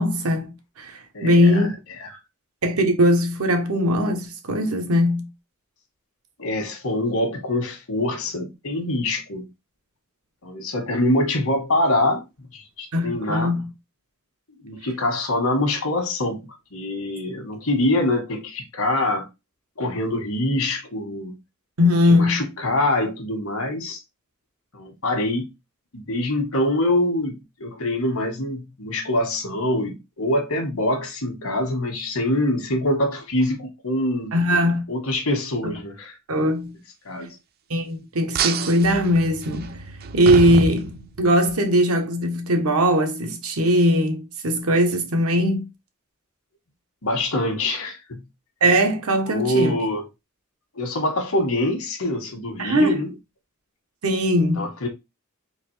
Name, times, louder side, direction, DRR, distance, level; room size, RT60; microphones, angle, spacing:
voice 1, 0.0-1.7 2.6-5.3 12.9-13.7 21.8-22.4 34.3-34.9 35.6-35.8 36.3-36.7 37.7-39.8 40.1-45.6 48.6-49.7 52.6-53.0 54.0-54.7, equal, 80° right, 0.9 m, -20 dB
voice 2, 1.1-1.7 2.0-2.2 6.4-9.5 10.4-12.2 12.5-13.6 14.6-19.3 19.8-21.3 22.1-24.0 24.7-25.5 25.9-34.4 34.9-36.2 37.0-37.3 47.0-48.2 49.3-50.1 50.7-53.1 54.6-54.9, left 1 dB, 80° left, 1.2 m, -24 dB
sound 1, 38.3-41.5, right 6 dB, 45° right, 0.4 m, -28 dB
3.9 x 3.0 x 3.1 m
head